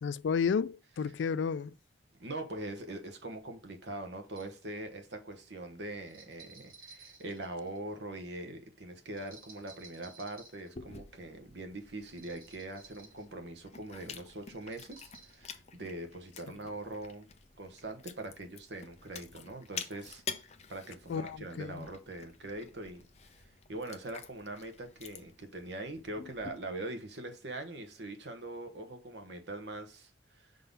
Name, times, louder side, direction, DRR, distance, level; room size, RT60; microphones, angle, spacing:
voice 1, 0.0-1.8 21.1-21.9, left 6 dB, 75° left, 0.3 m, -32 dB
voice 2, 2.2-17.3 17.6-23.0 23.3-23.4 23.7-30.5, right 2 dB, 70° right, 1.2 m, -42 dB
sound 1, 4.2-4.6 6.1-7.9 9.2-10.7 12.1-13.3 14.6-15.4, right 4 dB, 50° right, 1.9 m, -55 dB
Chewing mastication, 10.8-26.5, left 6 dB, 35° left, 0.6 m, -49 dB
5.5 x 3.9 x 5.3 m
head